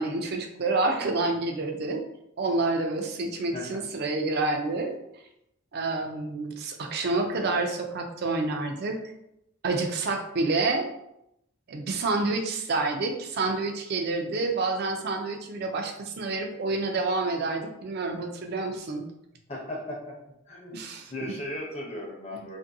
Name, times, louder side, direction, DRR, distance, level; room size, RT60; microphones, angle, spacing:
voice 1, 0.0-2.0 2.4-5.0 5.7-9.0 9.6-10.9 11.7-19.1 20.7-21.3, right 3 dB, 45° right, 4 dB, 0.4 m, -28 dB
voice 2, 19.5-20.1 20.5-20.8 21.1-22.6, left 1 dB, 30° left, -2 dB, 0.6 m, -36 dB
2.6 x 2.6 x 2.6 m, 0.81 s
head